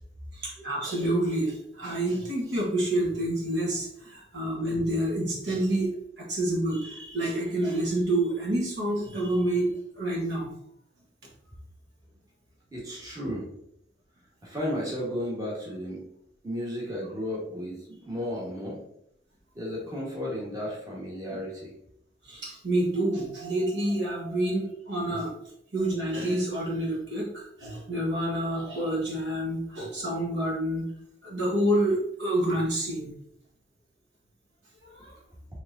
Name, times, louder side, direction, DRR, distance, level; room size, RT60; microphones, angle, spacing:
voice 1, 0.3-5.9 6.2-10.5 21.3-21.4 22.2-25.3 25.7-30.8 31.2-33.1 34.8-35.1, right 1 dB, 70° right, -3 dB, 1.2 m, -28 dB
voice 2, 12.7-13.4 14.4-16.0 16.4-18.8 19.5-21.7, equal, 20° right, -5 dB, 1.3 m, -33 dB
4.5 x 3.6 x 2.6 m, 0.73 s
head